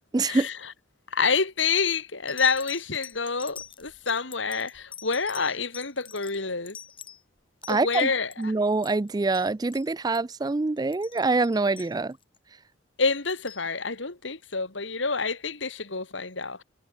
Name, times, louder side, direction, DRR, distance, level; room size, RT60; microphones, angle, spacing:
voice 1, 0.1-0.5 7.7-8.1 8.4-12.2, right 3 dB, 20° right, 0.4 m, -25 dB
voice 2, 1.1-6.8 7.7-8.5 13.0-16.6, left 4 dB, 85° left, 2.9 m, -28 dB
sound 1, 1.4-1.7 2.3-8.4 8.7-9.1 9.3-9.5 9.7-9.9 10.1-10.4 10.8-12.4 13.0-13.7 14.5-14.6, left 8 dB, 25° left, 2.3 m, -45 dB
head